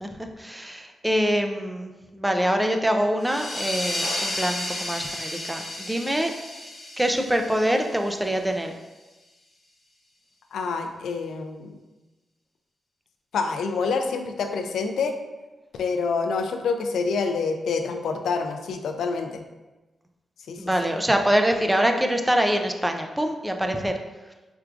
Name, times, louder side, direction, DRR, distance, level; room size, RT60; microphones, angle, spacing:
voice 1, 0.4-6.3 7.0-8.7 20.6-24.0, equal, 10° right, 4 dB, 0.4 m, -24 dB
sound 1, 3.2-8.5, left 1 dB, 25° left, 0.9 m, -32 dB
voice 2, 10.5-11.8 13.3-15.2 15.7-19.4 20.5-20.9, left 4 dB, 85° left, 6 dB, 0.3 m, -27 dB
4.4 x 2.4 x 2.4 m, 1.1 s
cardioid pair, 75°, 0 cm